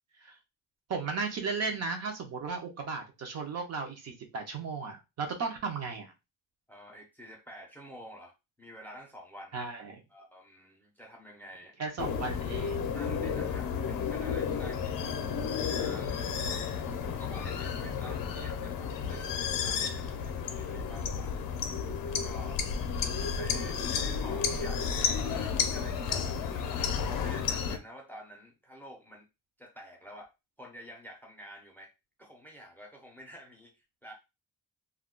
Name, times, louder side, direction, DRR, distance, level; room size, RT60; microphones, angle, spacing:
voice 1, 0.9-6.1 9.5-10.0 11.8-12.9, right 4 dB, 45° right, 4 dB, 0.5 m, -35 dB
voice 2, 6.7-9.6 10.1-11.8 12.9-15.2 15.7-21.5 22.2-22.6 23.3-29.3 29.6-30.3 30.6-31.9 32.2-34.1, equal, 5° left, 1 dB, 0.5 m, -49 dB
sound 1, 12.0-27.8, left 6 dB, 60° left, 0.5 m, -32 dB
2.3 x 2.2 x 3.6 m, 0.25 s
cardioid pair, 180°, 38 cm